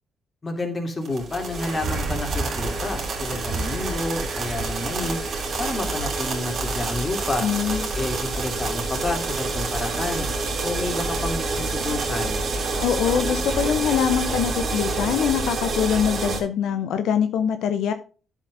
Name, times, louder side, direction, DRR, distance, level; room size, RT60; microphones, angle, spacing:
voice 1, 0.4-5.2 5.6-7.5 7.9-10.3 10.6-12.4, left 2 dB, 30° left, 3 dB, 2.9 m, -30 dB
sound 1, 1.0-16.4, right 3 dB, 55° right, 2.9 m, -28 dB
sound 2, 1.6-8.0 10.1-10.5 11.0-11.5 11.8-11.9, right 2 dB, 70° right, 2.7 m, -35 dB
voice 2, 7.4-7.9 12.8-17.9, left 8 dB, 80° left, 9 dB, 0.6 m, -23 dB
10.0 x 7.4 x 2.6 m, 0.37 s
cardioid pair, 90°, 0 cm